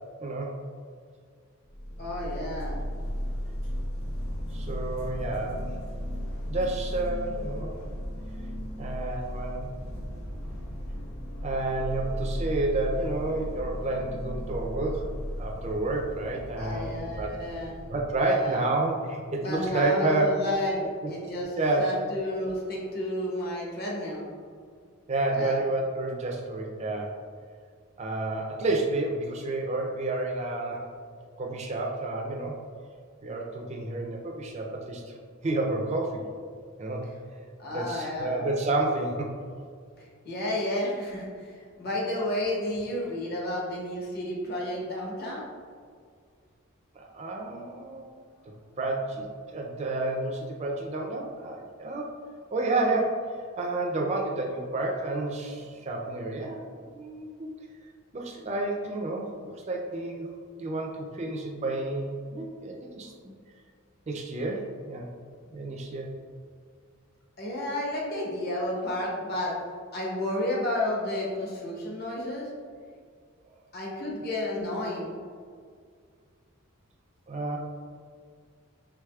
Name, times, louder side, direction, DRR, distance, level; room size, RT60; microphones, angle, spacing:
voice 1, 0.2-0.5 4.5-5.7 6.5-7.9 8.8-9.7 11.4-15.1 15.4-17.3 17.9-20.4 21.0-21.1 21.6-21.9 25.1-27.1 28.0-30.9 31.4-32.6 33.2-35.0 35.4-36.2 36.8-37.1 37.7-39.3 46.9-48.1 48.8-49.3 49.5-52.1 52.5-57.5 58.1-60.3 60.6-63.1 64.1-65.1 65.5-66.1 77.3-77.6, right 2 dB, 30° right, 0 dB, 0.4 m, -30 dB
sound 1, 1.7-18.3, equal, 70° left, 1.0 m, -35 dB
voice 2, 2.0-2.8 16.6-17.8 18.2-18.6 19.4-24.2 25.3-25.6 37.6-38.5 40.2-41.5 41.8-45.4 67.4-69.5 69.9-72.5 73.7-75.1, left 1 dB, 45° left, -3 dB, 0.9 m, -31 dB
4.8 x 3.5 x 2.3 m, 2.1 s
head